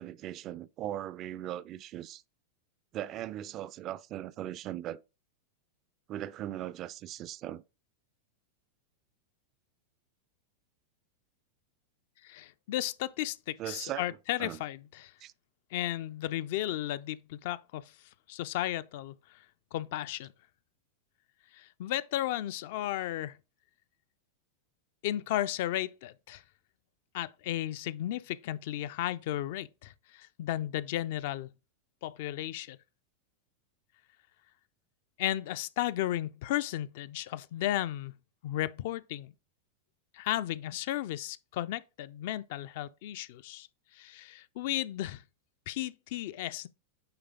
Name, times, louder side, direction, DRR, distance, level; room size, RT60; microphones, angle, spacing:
voice 1, 0.0-2.2 2.9-5.0 6.1-7.6 13.6-14.6 15.2-15.3, right 12 dB, 35° right, 0.4 m, -39 dB
voice 2, 12.2-15.1 15.7-17.9 18.3-19.1 19.7-20.3 21.5-23.4 25.0-26.4 27.1-31.5 32.0-32.8 35.2-38.2 38.4-39.3 40.1-43.7 43.9-45.2 45.7-46.7, left 13 dB, 50° left, 0.4 m, -34 dB
8.9 x 3.3 x 3.7 m
figure-of-eight pair, 90°, 0 cm